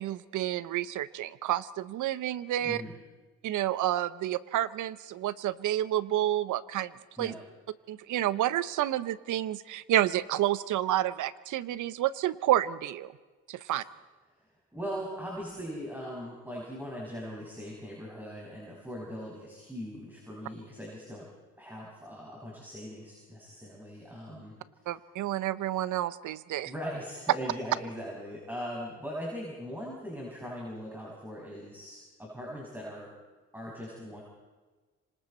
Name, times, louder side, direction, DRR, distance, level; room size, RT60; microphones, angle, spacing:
voice 1, 0.0-2.8 3.4-6.9 7.2-7.3 7.9-13.1 13.5-13.8 24.9-26.7, right 13 dB, 80° right, 16 dB, 0.9 m, -29 dB
voice 2, 2.6-2.9 7.2-7.4 14.4-21.3 21.6-24.5 24.8-24.9 26.6-33.1 33.5-34.2, equal, 5° right, -4 dB, 6.2 m, -40 dB
26.0 x 25.5 x 4.4 m, 1.3 s
cardioid pair, 90°, 30 cm